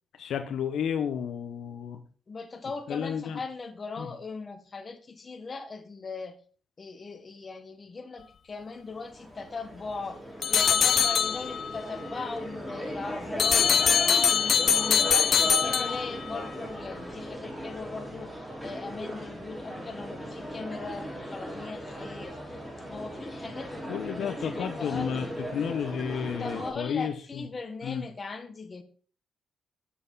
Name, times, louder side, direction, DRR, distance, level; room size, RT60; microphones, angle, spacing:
voice 1, 0.2-2.0 2.9-3.4 4.0-4.1 23.9-25.3 25.5-27.4 27.8-28.0, left 8 dB, 70° left, 1.0 m, -32 dB
voice 2, 2.3-6.4 6.8-10.2 10.5-22.6 22.9-25.4 26.4-28.8, left 4 dB, 35° left, 1.5 m, -39 dB
sound 1, 8.7-26.7, equal, 5° right, 4.4 m, -38 dB
sound 2, 10.4-11.8 13.4-16.4, left 7 dB, 55° left, 0.5 m, -23 dB
8.1 x 7.9 x 4.1 m
cardioid pair, 90°, 0 cm